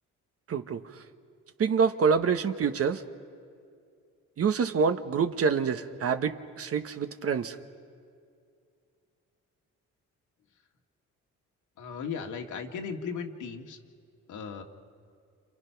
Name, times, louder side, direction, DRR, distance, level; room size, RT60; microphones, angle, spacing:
voice 1, 0.5-0.8 1.6-3.0 4.4-7.6, right 6 dB, 50° right, 9 dB, 1.1 m, -26 dB
voice 2, 11.8-13.8 14.3-14.6, left 6 dB, 75° left, 3 dB, 2.1 m, -36 dB
29.0 x 28.0 x 5.8 m, 2.3 s
cardioid pair, 90°, 30 cm